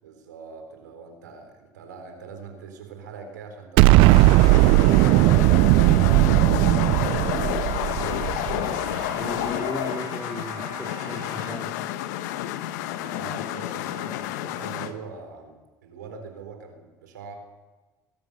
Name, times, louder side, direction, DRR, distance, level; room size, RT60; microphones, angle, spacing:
voice 1, 0.0-4.5 4.8-8.0 12.9-17.3, right 5 dB, 90° right, 5 dB, 4.2 m, -43 dB
sound 1, 3.8-14.9, left 13 dB, 75° left, 1.3 m, -30 dB
Explosion, 3.8-8.9, right 18 dB, 65° right, 0.7 m, -17 dB
Trumpet, 6.9-11.6, right 4 dB, 45° right, 7.8 m, -42 dB
voice 2, 9.2-11.7, equal, 5° left, -2 dB, 4.5 m, -35 dB
23.0 x 17.0 x 6.8 m, 1.2 s
hypercardioid pair, 75°, 9 cm